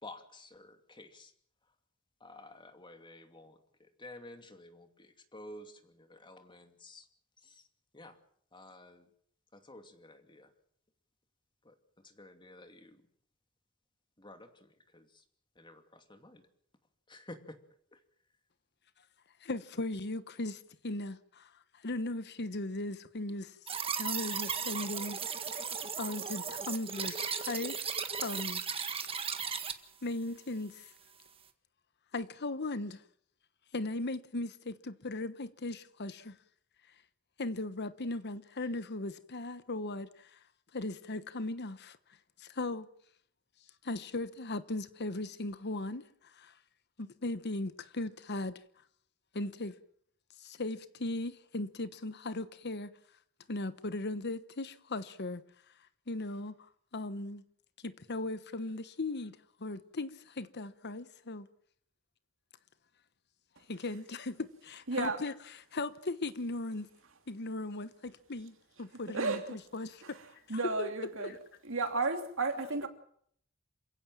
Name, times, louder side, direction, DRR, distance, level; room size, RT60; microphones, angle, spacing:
voice 1, 0.0-1.3 2.2-7.1 7.4-7.7 7.9-8.2 8.5-9.1 9.5-10.5 11.6-13.0 14.2-15.2 15.6-16.5 17.1-17.6 17.9-18.0, left 2 dB, 25° left, 2.5 m, -52 dB
voice 2, 19.4-21.5 21.8-23.6 24.0-25.5 26.0-27.8 28.2-28.6 30.0-30.9 32.1-33.0 33.7-36.4 37.4-40.4 40.7-42.0 42.4-42.9 43.8-46.1 46.4-46.5 47.0-48.6 49.3-49.8 50.4-52.9 53.5-55.4 56.1-56.5 56.9-57.4 57.8-61.5 63.7-65.3 65.7-66.9 67.3-70.2 70.8-70.9 71.2-71.4, left 2 dB, 55° left, 1.1 m, -38 dB
sound 1, 23.7-29.7, right 6 dB, 25° right, 1.6 m, -36 dB
voice 3, 64.9-65.2 69.1-69.5 70.0-70.2 70.5-71.3 71.6-72.9, right 3 dB, 65° right, 2.9 m, -33 dB
28.0 x 16.0 x 7.5 m
head